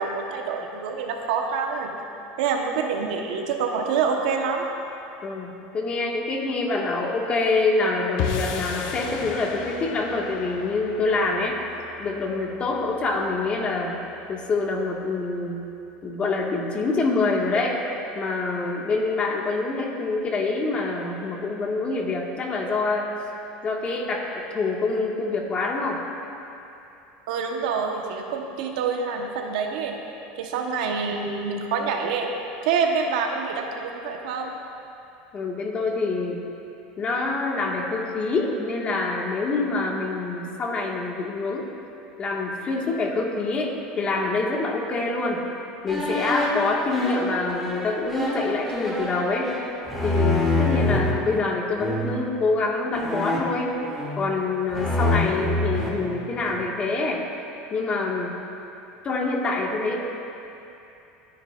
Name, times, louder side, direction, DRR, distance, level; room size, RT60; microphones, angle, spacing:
voice 1, 0.0-1.9 2.4-4.7 27.3-30.0 30.4-32.3 32.6-34.6 50.7-50.9, right 5 dB, 85° right, 2 dB, 1.2 m, -26 dB
voice 2, 5.2-11.6 12.0-13.9 14.3-15.6 16.0-17.8 18.1-23.1 23.6-26.0 35.3-36.4 37.0-41.7 42.2-45.4 45.8-49.6 50.0-53.8 54.2-57.2 57.7-58.3 59.0-60.0, left 3 dB, 30° left, -1 dB, 1.8 m, -26 dB
sound 1, 8.2-14.6, left 6 dB, 70° left, 1.0 m, -35 dB
sound 2, 45.9-51.1 51.8-52.3 52.9-54.4 54.7-56.7, left 2 dB, ahead, 2.6 m, -26 dB
24.5 x 9.8 x 2.6 m, 2.8 s
supercardioid pair, 125°, 4 cm